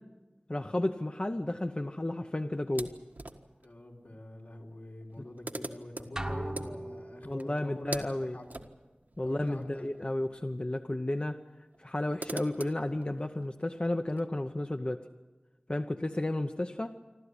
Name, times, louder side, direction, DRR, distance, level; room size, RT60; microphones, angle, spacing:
voice 1, 0.5-2.9 7.2-8.4 9.2-11.4 11.8-15.0 15.7-16.9, left 1 dB, 35° left, 6 dB, 0.9 m, -32 dB
sound 1, 2.7-3.7 4.7-4.8 5.0-10.6 10.8-10.9 11.7-14.2, right 2 dB, 70° right, 1.6 m, -44 dB
voice 2, 3.6-8.6 9.2-9.9, left 1 dB, 75° left, -1 dB, 4.0 m, -45 dB
sound 2, 6.2-7.6, right 1 dB, 20° right, 1.1 m, -38 dB
28.0 x 12.5 x 9.9 m, 1.2 s
wide cardioid pair, 50°, 3 cm